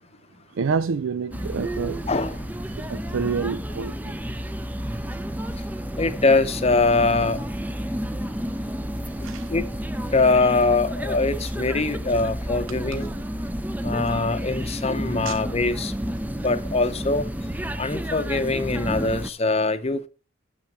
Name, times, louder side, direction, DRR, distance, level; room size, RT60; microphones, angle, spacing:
voice 1, 0.5-2.0 2.8-3.9 8.3-8.5 9.1-9.5 15.2-15.4, right 5 dB, 80° right, 0.4 m, -28 dB
sound 1, 1.3-19.3, equal, 10° right, 0.5 m, -30 dB
voice 2, 2.1-2.4 6.0-7.4 9.5-9.7 10.1-13.1 13.8-15.9 16.4-17.3 17.8-20.1, left 3 dB, 30° left, 0.7 m, -22 dB
8.2 x 6.1 x 5.9 m
head